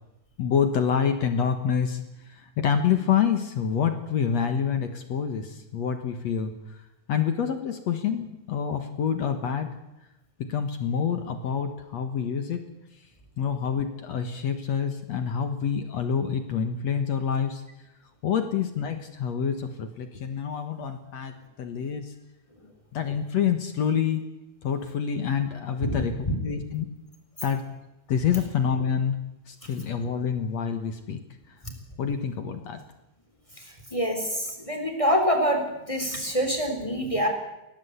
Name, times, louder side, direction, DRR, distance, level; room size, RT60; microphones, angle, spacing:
voice 1, 0.4-6.8 7.1-9.7 10.5-12.6 13.4-17.6 18.2-22.1 22.9-24.2 24.6-26.9 27.4-27.6 28.1-29.2 29.5-31.2 31.5-31.6 32.0-32.8, left 7 dB, 60° left, 7 dB, 1.8 m, -27 dB
voice 2, 33.9-35.6 35.9-37.3, equal, 10° left, 4 dB, 3.6 m, -25 dB
22.5 x 17.5 x 8.2 m, 0.94 s
omnidirectional pair, 4.9 m